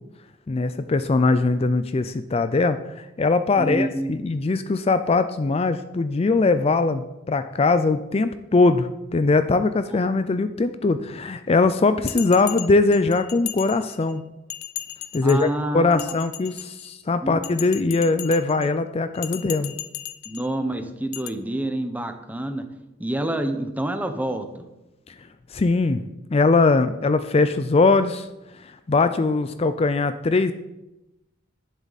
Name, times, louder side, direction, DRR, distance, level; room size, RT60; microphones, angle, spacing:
voice 1, 0.5-14.2 15.1-15.5 15.7-19.7 25.1-25.2 25.5-26.0 26.3-28.3 28.6-30.5, left 3 dB, 30° left, 10 dB, 0.4 m, -21 dB
voice 2, 3.6-4.2 15.2-16.2 17.2-17.4 20.3-22.6 23.0-24.6, right 1 dB, 10° right, 7 dB, 0.9 m, -27 dB
Bell, 12.1-14.1 14.5-15.5 15.9-16.9 17.4-18.7 19.1-20.5 21.1-21.3, left 14 dB, 85° left, 0.6 m, -36 dB
10.5 x 10.5 x 4.1 m, 0.97 s
head